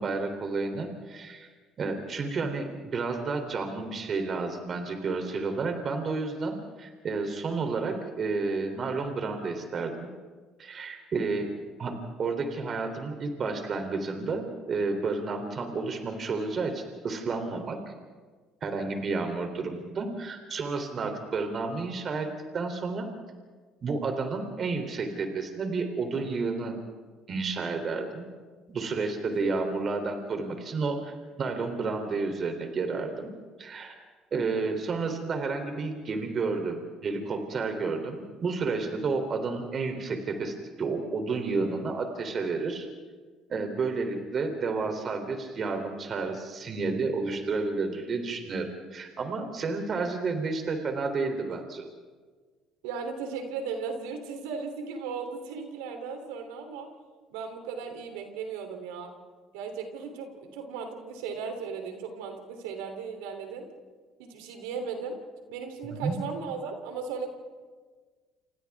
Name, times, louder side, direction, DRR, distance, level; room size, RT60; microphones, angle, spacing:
voice 1, 0.0-1.5 1.8-10.1 10.6-11.5 11.8-17.8 18.6-23.1 23.8-26.7 27.3-28.3 28.7-33.3 33.6-34.0 34.3-42.9 43.5-51.8 65.9-66.2, right 4 dB, 45° right, 5 dB, 3.3 m, -31 dB
voice 2, 52.8-56.9 57.3-59.1 59.5-63.7 64.2-65.2 65.5-67.3, right 5 dB, 85° right, 5 dB, 3.3 m, -36 dB
29.0 x 27.5 x 3.6 m, 1.5 s
supercardioid pair, 70°, 0 cm